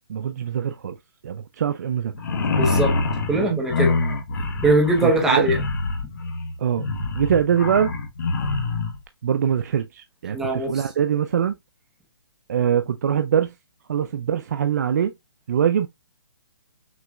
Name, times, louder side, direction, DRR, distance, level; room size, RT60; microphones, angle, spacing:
voice 1, 0.1-1.0 1.2-2.1 3.3-3.6 5.0-5.5 6.6-6.9 7.1-7.9 9.2-11.5 12.5-13.5 13.9-15.1 15.5-15.9, right 8 dB, 40° right, 0.4 m, -23 dB
sound 1, 2.1-9.0, left 3 dB, 45° left, 1.3 m, -25 dB
voice 2, 2.6-2.9 3.3-4.0 4.6-5.6 10.3-10.8, right 2 dB, 5° right, 0.9 m, -21 dB
6.0 x 3.1 x 2.3 m
hypercardioid pair, 165°, 13 cm